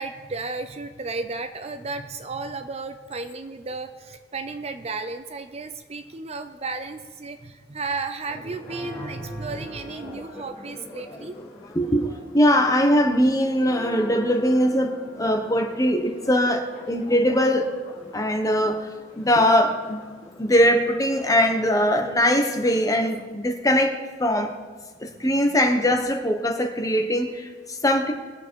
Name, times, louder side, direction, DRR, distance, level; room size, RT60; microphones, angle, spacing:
voice 1, 0.0-11.4 25.1-25.3, right 3 dB, 35° right, 9 dB, 0.6 m, -33 dB
Church bell, 8.3-23.2, left 2 dB, 35° left, 3.8 m, -43 dB
voice 2, 11.7-17.7 18.1-18.9 19.2-20.0 20.4-24.5 25.0-28.1, equal, 20° left, 3 dB, 1.2 m, -21 dB
21.0 x 7.7 x 4.7 m, 1.4 s
head